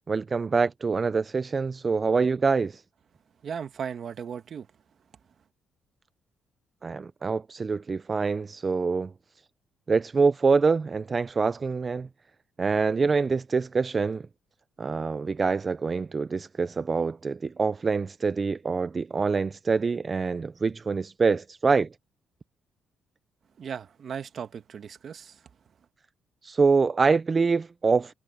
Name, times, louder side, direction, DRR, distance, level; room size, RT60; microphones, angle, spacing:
voice 1, 0.1-2.8 6.8-9.1 9.9-12.1 12.6-14.2 14.8-21.9 26.4-28.1, right 4 dB, 35° right, 0.5 m, -25 dB
voice 2, 3.4-4.7 23.6-25.3, right 7 dB, 55° right, 1.3 m, -36 dB
cardioid pair, 90°, 0 cm